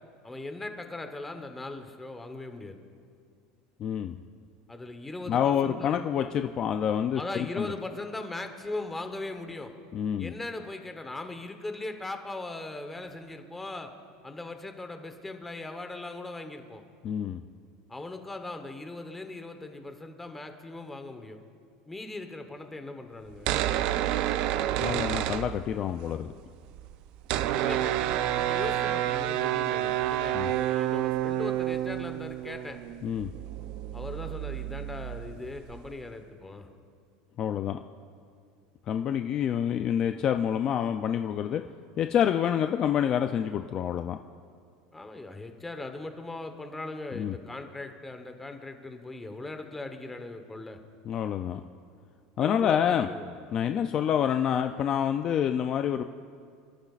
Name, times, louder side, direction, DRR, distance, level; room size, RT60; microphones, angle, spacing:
voice 1, 0.2-2.8 4.7-6.0 7.2-9.7 10.2-13.9 14.2-16.8 17.9-21.4 21.9-23.5 27.5-32.8 33.9-36.7 44.9-50.8 52.4-53.4, left 2 dB, 10° left, 6 dB, 1.0 m, -39 dB
voice 2, 3.8-4.2 5.3-7.7 9.9-10.3 17.0-17.4 24.8-26.3 30.3-30.5 33.0-33.3 37.4-37.8 38.9-41.6 42.0-44.2 47.1-47.4 51.1-51.6 52.4-53.1 53.5-56.0, left 9 dB, 30° left, 7 dB, 0.4 m, -27 dB
sound 1, 23.3-26.1 26.3-26.4 26.6-36.0, right 13 dB, 50° right, 0.5 m, -29 dB
28.0 x 13.0 x 2.5 m, 2.2 s
supercardioid pair, 160°, 2 cm